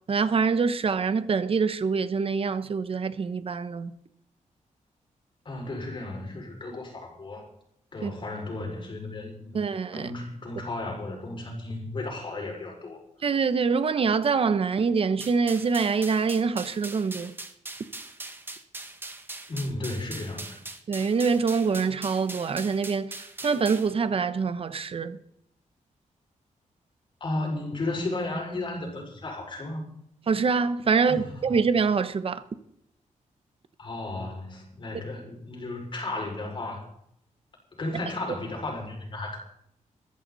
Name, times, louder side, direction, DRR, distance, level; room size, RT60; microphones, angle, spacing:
voice 1, 0.1-3.9 8.0-8.1 9.5-10.1 13.2-17.3 20.9-25.2 30.3-32.4, right 5 dB, 45° right, 1.1 m, -25 dB
voice 2, 5.4-7.5 7.9-9.6 9.9-13.0 19.5-20.6 27.2-29.8 31.1-31.3 33.8-36.8 37.8-39.4, left 2 dB, 40° left, 6.0 m, -34 dB
sound 1, 15.2-23.9, right 2 dB, 15° right, 1.4 m, -41 dB
21.5 x 14.5 x 4.2 m
wide cardioid pair, 170°, 14 cm